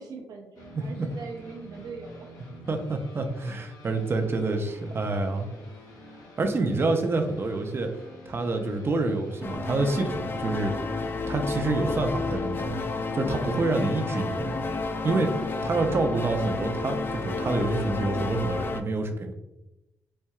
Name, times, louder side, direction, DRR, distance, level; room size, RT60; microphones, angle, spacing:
voice 1, 0.0-2.3, right 4 dB, 75° right, 2 dB, 0.7 m, -42 dB
sound 1, 0.6-17.9, left 1 dB, 70° left, 0.8 m, -48 dB
voice 2, 2.7-5.5 6.4-7.9 8.3-10.7 11.3-12.8 13.1-14.6 15.0-19.3, right 3 dB, 40° right, 5 dB, 0.5 m, -27 dB
sound 2, 9.4-18.8, left 3 dB, 35° left, 0.3 m, -31 dB
4.3 x 2.7 x 2.3 m, 0.95 s
cardioid pair, 70°, 6 cm